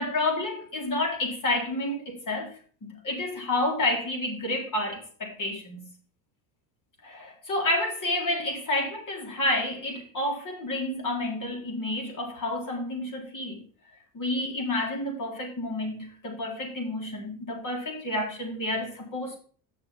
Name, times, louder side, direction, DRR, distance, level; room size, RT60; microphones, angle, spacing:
voice 1, 0.0-2.5 2.8-5.9 7.0-13.6 14.1-19.4, left 1 dB, 45° left, 3.9 m, -30 dB
7.0 x 6.5 x 5.7 m
supercardioid pair, 75°, 45 cm